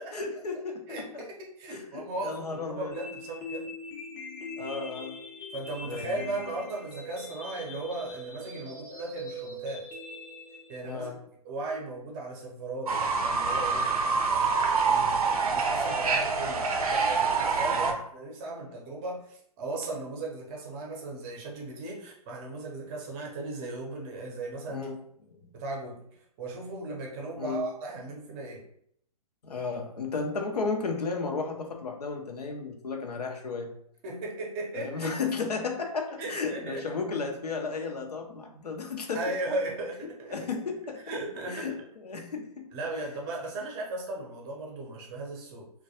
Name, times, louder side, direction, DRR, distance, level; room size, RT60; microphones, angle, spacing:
voice 1, 0.0-1.2 1.7-2.9 4.6-5.2 5.8-6.2 10.8-11.2 14.9-15.2 17.7-18.0 24.7-25.0 25.3-25.5 27.4-27.7 29.4-33.7 34.7-39.2 40.3-41.0 41.5-42.7, left 4 dB, 85° left, 3 dB, 0.5 m, -34 dB
voice 2, 0.9-3.7 5.5-9.9 10.7-11.2 11.4-13.9 15.1-24.9 25.5-26.0 26.4-28.6 34.0-35.1 36.2-36.8 39.1-40.4 41.1-41.8 42.7-45.7, right 2 dB, 25° right, -2 dB, 0.6 m, -37 dB
sound 1, 2.9-10.9, left 2 dB, 20° left, 0.5 m, -42 dB
Fowl / Bird, 12.9-17.9, right 4 dB, 70° right, 0.5 m, -26 dB
2.2 x 2.1 x 2.7 m, 0.69 s
hypercardioid pair, 130°, 20 cm